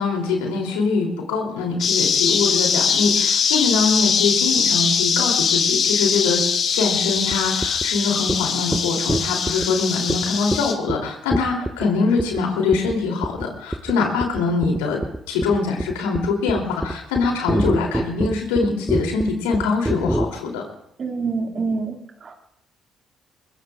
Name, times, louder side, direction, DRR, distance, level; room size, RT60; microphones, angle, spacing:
voice 1, 0.0-6.4 6.7-15.0 15.3-20.6, left 4 dB, 85° left, 1 dB, 3.2 m, -23 dB
sound 1, 1.8-10.7, left 6 dB, 60° left, 1.9 m, -21 dB
sound 2, 7.3-7.4 7.6-7.9 8.3-8.4 8.7-8.8 9.1-9.7 10.1-10.2 10.5-10.6 10.9-11.0 11.3-11.9 12.2-12.4 12.7-13.0 13.2-13.5 13.7-13.9 14.2-20.3, right 1 dB, 10° right, 0.9 m, -24 dB
voice 2, 21.0-22.3, right 4 dB, 50° right, 2 dB, 2.4 m, -27 dB
23.5 x 22.5 x 2.5 m, 0.76 s
hypercardioid pair, 50°, 0 cm